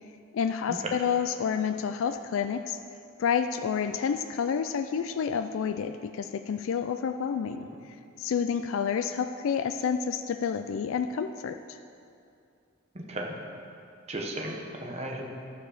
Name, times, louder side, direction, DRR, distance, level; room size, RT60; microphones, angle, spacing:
voice 1, 0.3-2.8 3.2-11.8, left 7 dB, 70° left, 8 dB, 0.3 m, -29 dB
voice 2, 12.9-13.4 14.1-15.3, right 1 dB, 30° right, 0 dB, 0.9 m, -35 dB
12.0 x 4.8 x 6.8 m, 2.5 s
head